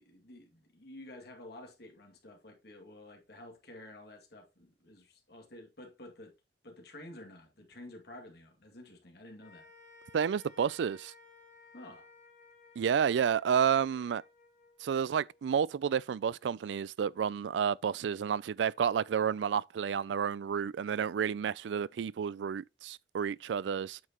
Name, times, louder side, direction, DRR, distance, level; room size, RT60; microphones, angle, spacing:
voice 1, 0.0-6.3 6.6-9.7 11.7-12.1, left 1 dB, 65° left, 2.3 m, -51 dB
sound 1, 9.4-15.8, left 4 dB, 40° left, 2.1 m, -58 dB
voice 2, 10.1-11.1 12.8-14.2 14.8-24.0, right 7 dB, 80° right, 0.3 m, -30 dB
8.6 x 6.5 x 3.0 m
head